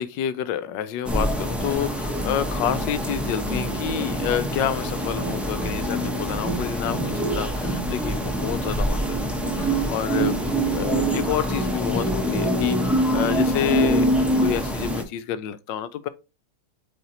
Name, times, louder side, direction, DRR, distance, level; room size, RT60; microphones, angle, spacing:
voice 1, 0.0-9.1 9.4-10.4 10.7-14.1 14.4-16.1, left 10 dB, 75° left, 1.2 m, -29 dB
sound 1, 1.0-15.0, right 1 dB, ahead, 0.4 m, -25 dB
8.1 x 4.0 x 2.9 m
omnidirectional pair, 2.1 m